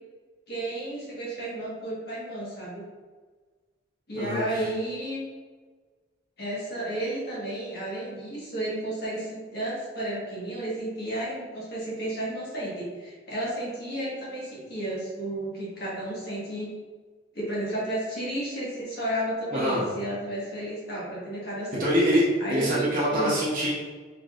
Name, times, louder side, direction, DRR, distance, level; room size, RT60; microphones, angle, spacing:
voice 1, 0.5-2.8 4.1-5.2 6.4-16.7 17.3-21.8 22.4-23.3, right 1 dB, 55° left, -6 dB, 1.5 m, -32 dB
voice 2, 19.5-19.8 21.8-22.2 22.5-23.7, equal, 45° right, -6 dB, 0.9 m, -24 dB
4.3 x 3.9 x 2.5 m, 1.4 s
head